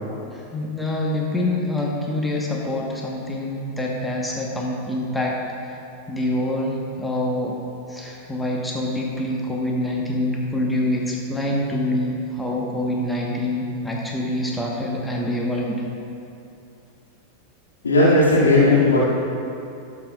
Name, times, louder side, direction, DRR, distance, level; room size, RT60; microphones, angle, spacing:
voice 1, 0.1-5.3 6.1-7.5 7.9-15.8, left 1 dB, 5° left, -2 dB, 1.2 m, -25 dB
voice 2, 17.8-19.0, left 2 dB, 70° left, -8 dB, 2.1 m, -15 dB
18.5 x 7.2 x 2.4 m, 2.6 s
figure-of-eight pair, 90°, 0 cm